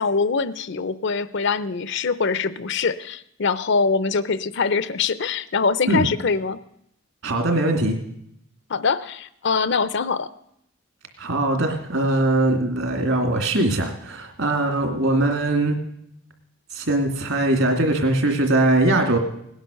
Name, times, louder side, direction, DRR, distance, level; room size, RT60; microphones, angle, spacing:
voice 1, 0.0-6.6 8.7-10.3, left 5 dB, 55° left, 15 dB, 0.6 m, -23 dB
voice 2, 7.2-8.0 11.2-15.8 16.7-19.2, right 2 dB, 65° right, 4 dB, 2.6 m, -21 dB
18.0 x 10.0 x 6.5 m, 0.75 s
head